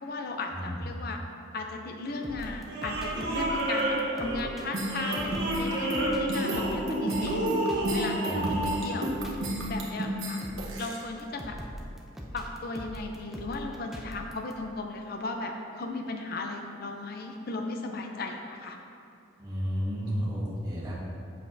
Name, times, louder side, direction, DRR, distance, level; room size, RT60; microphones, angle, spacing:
voice 1, 0.0-1.2 1.5-7.4 7.9-9.1 9.7-10.4 10.8-11.6 12.3-18.8, left 3 dB, 50° left, 3 dB, 0.5 m, -36 dB
sound 1, 2.1-8.8, right 1 dB, 55° right, 1.1 m, -31 dB
sound 2, 2.2-14.5, equal, ahead, 0.4 m, -42 dB
sound 3, 4.7-11.0, right 1 dB, 75° right, 1.1 m, -32 dB
voice 2, 8.2-8.6 19.4-20.9, equal, 20° right, -7 dB, 1.4 m, -32 dB
7.5 x 6.4 x 2.7 m, 2.5 s
head